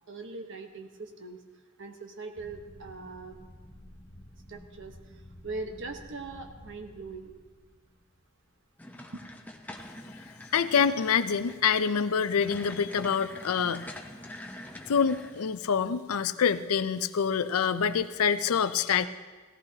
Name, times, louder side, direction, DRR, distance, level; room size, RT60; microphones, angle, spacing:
voice 1, 0.1-1.4 1.8-3.4 4.5-4.9 5.4-7.3 9.1-9.2, right 3 dB, 55° right, 4 dB, 1.1 m, -40 dB
sound 1, 2.4-8.5, left 1 dB, 35° left, 2.2 m, -52 dB
sound 2, 8.8-15.5, left 1 dB, 5° left, 0.7 m, -45 dB
voice 2, 10.5-13.8 14.9-19.1, left 7 dB, 80° left, 13 dB, 0.5 m, -26 dB
17.0 x 14.0 x 2.8 m, 1.4 s
head